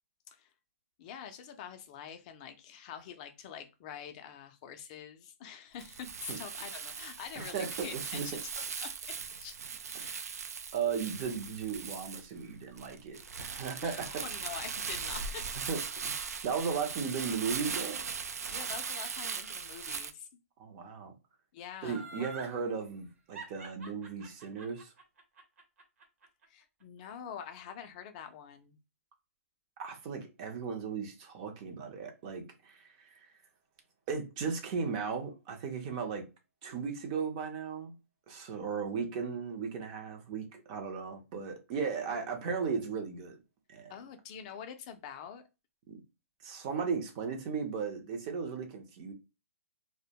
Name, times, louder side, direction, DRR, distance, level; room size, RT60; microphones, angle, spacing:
voice 1, 1.0-9.0 9.4-9.6 10.0-10.2 13.8-15.4 18.5-20.3 21.5-22.3 26.5-28.8 42.1-42.5 43.9-45.4, left 8 dB, 30° left, 0.4 m, -46 dB
Crumpling crinkling, 5.8-20.1, right 6 dB, 90° right, 0.4 m, -39 dB
voice 2, 7.4-8.3 9.9-10.1 10.7-14.2 15.7-18.0 20.6-21.1 21.8-24.9 29.8-33.3 34.1-36.2 36.6-37.9 38.3-43.4 43.7-43.9 45.9-46.0 46.4-49.1, right 6 dB, 25° right, 0.5 m, -36 dB
Laughter, 21.8-22.5 23.3-26.4 26.8-26.9, right 4 dB, 65° right, 1.0 m, -46 dB
2.1 x 2.1 x 2.7 m
hypercardioid pair, 160°, 8 cm